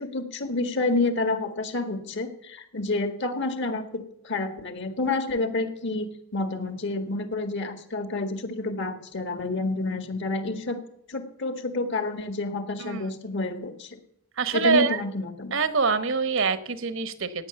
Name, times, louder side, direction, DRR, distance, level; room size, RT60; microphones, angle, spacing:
voice 1, 0.0-10.8 11.1-14.0 14.5-15.6, left 2 dB, 55° left, 8 dB, 1.8 m, -29 dB
voice 2, 14.4-15.0 15.5-17.5, right 5 dB, 65° right, 12 dB, 1.1 m, -24 dB
16.0 x 9.6 x 7.0 m, 0.74 s
head